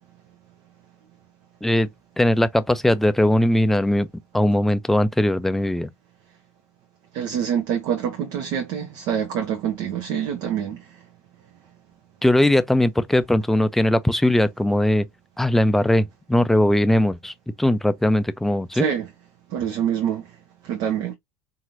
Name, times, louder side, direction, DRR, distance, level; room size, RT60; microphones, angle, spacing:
voice 1, 2.2-4.1 4.3-5.9 12.2-15.1 15.4-18.9, left 1 dB, 5° left, 0.4 m, -20 dB
voice 2, 7.1-10.9 18.7-19.1 19.5-20.2 20.6-21.1, right 8 dB, 55° right, 0.7 m, -26 dB
3.9 x 2.9 x 2.6 m
figure-of-eight pair, 75°, 8 cm